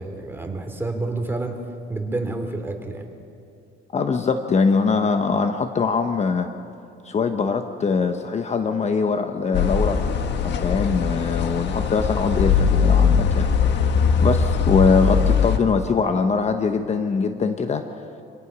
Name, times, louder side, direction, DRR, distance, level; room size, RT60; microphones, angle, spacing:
voice 1, 0.0-1.6 1.9-3.1 14.2-14.3, right 2 dB, 10° right, 3 dB, 2.7 m, -29 dB
voice 2, 3.9-6.5 7.0-10.0 10.4-13.5 14.2-17.8, left 5 dB, 35° left, 7 dB, 1.0 m, -22 dB
sound 1, 9.5-15.6, left 6 dB, 65° left, 1.6 m, -20 dB
26.0 x 17.5 x 6.2 m, 2.5 s
cardioid pair, 120°, 20 cm